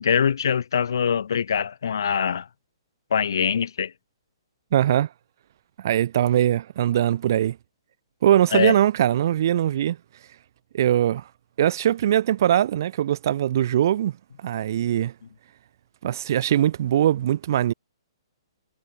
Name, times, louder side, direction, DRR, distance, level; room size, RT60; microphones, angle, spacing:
voice 1, 0.0-2.5 3.1-3.9 8.5-8.7, left 7 dB, 55° left, 2.9 m, -23 dB
voice 2, 4.7-5.1 5.8-7.6 8.2-10.0 10.7-11.2 11.6-14.1 14.4-15.1 16.0-17.7, right 11 dB, 45° right, 0.5 m, -21 dB
figure-of-eight pair, 120°, 3 cm